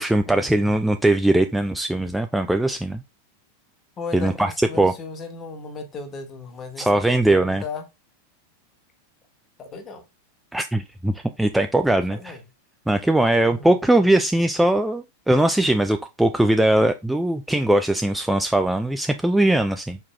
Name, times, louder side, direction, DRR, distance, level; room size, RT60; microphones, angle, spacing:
voice 1, 0.0-3.0 4.1-4.5 4.8-4.9 6.8-7.6 10.5-12.3 12.9-20.0, right 1 dB, 5° right, 0.3 m, -20 dB
voice 2, 4.0-7.8 9.6-10.0 11.9-12.5 13.4-13.8, left 4 dB, 25° left, 1.2 m, -36 dB
4.7 x 4.5 x 2.3 m
figure-of-eight pair, 90°, 0 cm